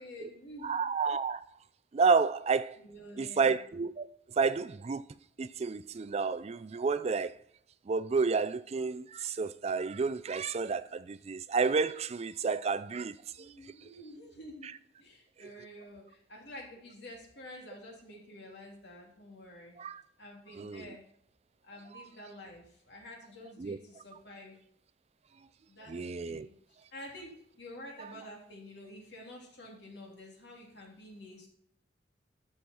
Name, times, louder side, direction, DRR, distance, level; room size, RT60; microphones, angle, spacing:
voice 1, 0.0-0.8 2.8-3.6 13.4-14.7 15.0-19.8 20.2-21.0 21.6-24.6 25.7-31.5, left 1 dB, 60° left, 3.1 m, -49 dB
voice 2, 0.6-1.4 1.9-2.8 3.2-4.1 4.4-5.0 5.4-7.3 7.9-13.5 15.4-15.5 19.8-20.0 20.6-20.8 21.9-22.0 23.6-23.8 25.9-26.5, right 5 dB, 35° right, 0.4 m, -30 dB
13.5 x 6.4 x 4.4 m
head